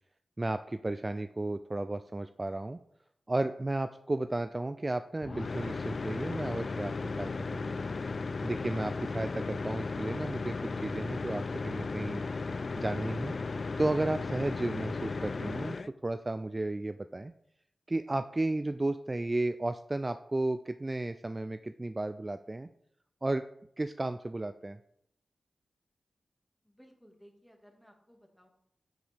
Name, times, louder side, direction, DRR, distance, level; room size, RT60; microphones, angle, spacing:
voice 1, 0.4-2.8 3.3-6.9 7.2-7.8 8.4-12.2 12.8-13.4 13.8-15.8 16.0-17.3 17.9-22.7 23.2-23.4 23.8-24.8, right 2 dB, 30° right, 10 dB, 0.3 m, -33 dB
sound 1, 5.2-15.9, left 4 dB, 60° left, 0.3 m, -35 dB
voice 2, 14.9-15.2 26.6-28.5, equal, ahead, 2 dB, 1.9 m, -58 dB
9.3 x 4.9 x 3.4 m, 0.73 s
cardioid pair, 50°, 0 cm